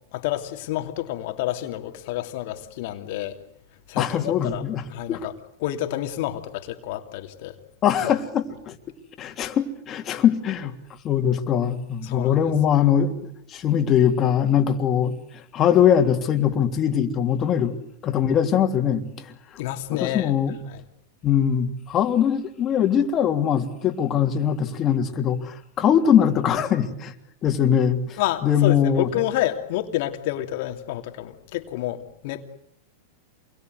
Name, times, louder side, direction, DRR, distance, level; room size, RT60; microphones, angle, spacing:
voice 1, 0.1-3.4 3.9-5.3 5.6-7.6 8.1-8.2 12.0-12.4 19.6-20.3 20.7-20.8 28.2-32.4, left 14 dB, 60° left, 2.8 m, -29 dB
voice 2, 4.0-5.3 7.8-8.8 9.2-10.7 11.0-19.3 19.9-20.6 21.2-27.1 27.4-29.1, left 9 dB, 35° left, 3.2 m, -22 dB
27.5 x 22.5 x 8.1 m
hypercardioid pair, 115°, 0 cm